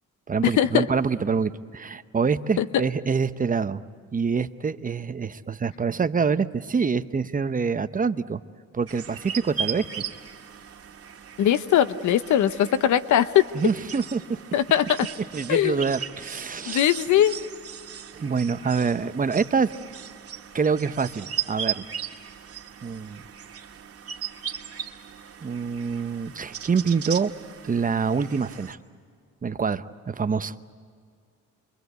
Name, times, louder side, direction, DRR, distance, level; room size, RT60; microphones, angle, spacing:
voice 1, 0.3-3.8 4.1-8.4 8.7-10.0 13.5-14.4 15.3-16.9 18.2-19.7 20.5-21.9 22.8-23.2 25.4-27.3 27.6-28.8 29.4-30.5, right 5 dB, 25° right, 11 dB, 0.9 m, -26 dB
sound 1, 8.9-28.8, right 9 dB, 50° right, 2.2 m, -37 dB
voice 2, 11.4-13.4 14.5-15.1 15.5-15.9 16.7-17.3, left 11 dB, 75° left, 13 dB, 0.9 m, -20 dB
27.5 x 23.5 x 8.1 m, 2.2 s
cardioid pair, 90°, 30 cm